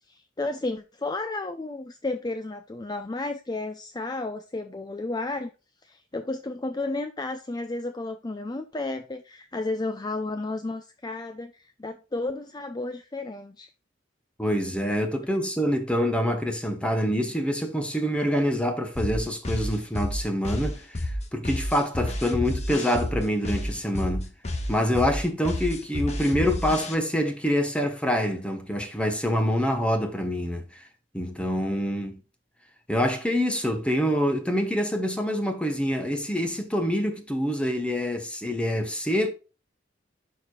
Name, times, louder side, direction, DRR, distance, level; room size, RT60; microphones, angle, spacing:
voice 1, 0.1-5.5 5.8-13.7, left 2 dB, 20° left, 0.5 m, -32 dB
voice 2, 14.4-24.3 24.7-30.8 31.1-32.2 32.9-39.3, equal, 5° left, 1.1 m, -26 dB
sound 1, 18.9-26.9, left 1 dB, 35° left, 1.3 m, -30 dB
11.5 x 4.8 x 2.3 m
head